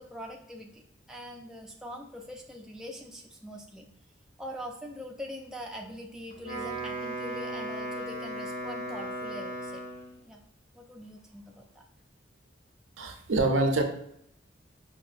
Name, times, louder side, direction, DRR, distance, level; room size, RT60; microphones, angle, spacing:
voice 1, 0.0-3.9 4.4-9.9 10.2-10.4 10.7-11.8, equal, 5° right, -1 dB, 0.3 m, -43 dB
Wind instrument woodwind instrument, 6.3-10.2, right 1 dB, 85° left, 1.3 m, -36 dB
voice 2, 13.0-13.8, right 2 dB, 85° right, 4 dB, 0.6 m, -25 dB
4.9 x 2.5 x 2.4 m, 0.72 s
head